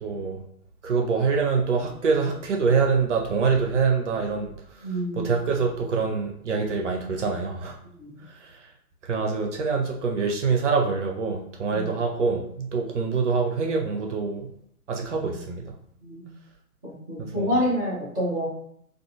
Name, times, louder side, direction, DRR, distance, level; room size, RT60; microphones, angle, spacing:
voice 1, 0.0-0.4 0.8-7.8 8.3-8.7 9.0-14.5 14.9-15.6 17.2-17.6, right 5 dB, 55° right, 1 dB, 0.6 m, -25 dB
voice 2, 4.8-5.3 8.0-8.2 11.7-11.9 16.0-16.2 16.8-18.5, equal, 5° left, -22 dB, 0.4 m, -27 dB
2.5 x 2.3 x 2.8 m, 0.67 s
figure-of-eight pair, 120°, 45 cm